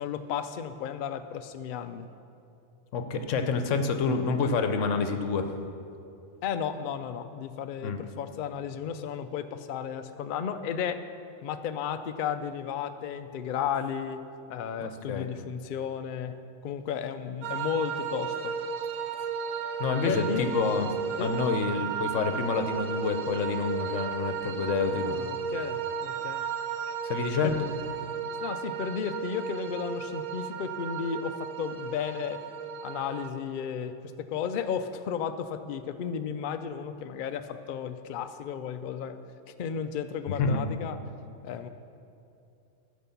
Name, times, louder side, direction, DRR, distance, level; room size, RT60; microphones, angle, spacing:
voice 1, 0.0-2.1 6.4-11.0 11.4-14.2 14.5-18.5 20.0-20.5 21.2-21.3 24.9-26.5 27.4-27.5 28.4-32.4 32.8-39.2 39.6-41.0 41.4-41.7, left 7 dB, 90° left, 9 dB, 0.4 m, -33 dB
voice 2, 2.9-5.5 7.8-8.0 14.8-15.3 19.8-20.9 21.2-25.2 27.0-27.7 40.4-40.6, left 5 dB, 65° left, 7 dB, 1.0 m, -28 dB
sound 1, 17.4-33.3, right 7 dB, 80° right, 1.2 m, -34 dB
12.5 x 5.1 x 7.0 m, 2.7 s
omnidirectional pair, 1.5 m